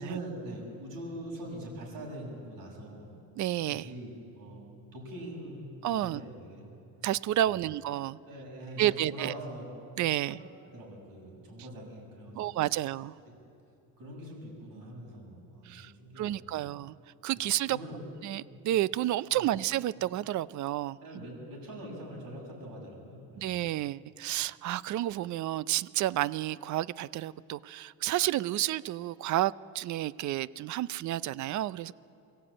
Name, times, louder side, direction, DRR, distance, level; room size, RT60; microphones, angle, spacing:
voice 1, 0.0-3.1 3.7-5.7 6.0-6.6 7.5-7.6 8.3-9.6 10.3-10.4 10.6-12.9 13.2-13.3 14.0-16.6 17.3-17.4 17.7-18.0 19.3-19.5 21.0-23.6, right 1 dB, 70° right, -1 dB, 7.6 m, -43 dB
voice 2, 3.4-3.9 5.8-6.2 7.0-8.2 8.8-9.3 10.0-10.4 12.3-13.1 15.6-16.9 17.2-17.8 18.2-21.0 23.4-31.9, right 14 dB, 55° right, 19 dB, 0.5 m, -30 dB
23.5 x 15.5 x 8.8 m, 2.6 s
cardioid pair, 120°, 36 cm